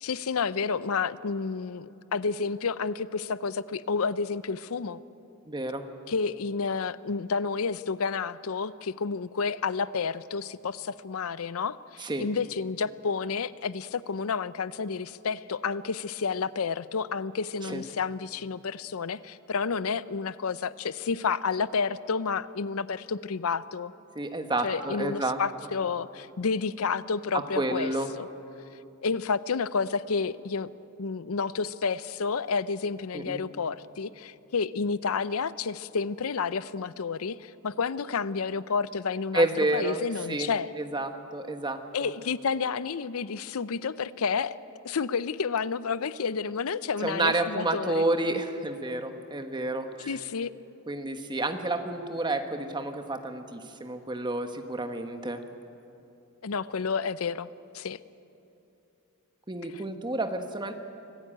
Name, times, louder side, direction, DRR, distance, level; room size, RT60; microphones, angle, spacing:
voice 1, 0.0-5.0 6.1-23.9 24.6-27.9 28.2-28.3 29.0-30.7 31.0-40.7 41.9-44.6 44.8-48.1 50.1-50.5 56.4-57.5 57.7-58.0 59.7-59.8, left 5 dB, 75° left, 17 dB, 0.6 m, -30 dB
voice 2, 5.5-5.8 12.0-12.3 17.7-17.8 24.1-25.4 27.5-28.1 33.1-33.4 39.3-40.0 40.3-40.5 40.8-42.1 47.0-50.1 50.9-55.4 59.5-60.7, right 2 dB, 20° right, 7 dB, 1.2 m, -30 dB
24.5 x 15.5 x 8.9 m, 2.8 s
head